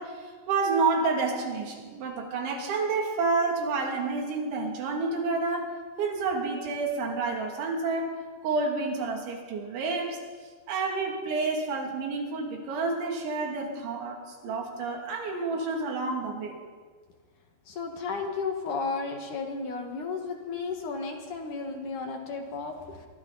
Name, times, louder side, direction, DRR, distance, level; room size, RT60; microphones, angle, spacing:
voice 1, 0.0-10.2 10.7-16.6, right 4 dB, 65° right, 1 dB, 5.1 m, -29 dB
voice 2, 17.7-23.1, left 4 dB, 55° left, 3 dB, 2.5 m, -33 dB
27.5 x 23.0 x 4.3 m, 1.5 s
omnidirectional pair, 6.0 m